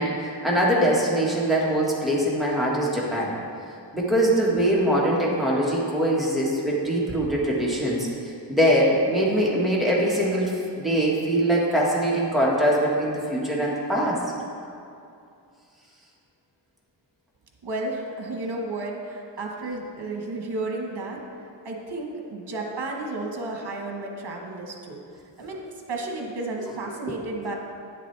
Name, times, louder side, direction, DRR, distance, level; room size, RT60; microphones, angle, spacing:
voice 1, 0.0-3.4 3.9-8.1 8.5-14.2 27.1-27.2, right 1 dB, ahead, -5 dB, 1.5 m, -22 dB
voice 2, 17.6-21.2 21.6-25.0 25.4-25.6 25.9-27.5, right 2 dB, 60° right, 1 dB, 1.2 m, -32 dB
9.3 x 7.5 x 3.3 m, 2.6 s
wide cardioid pair, 120°, 45 cm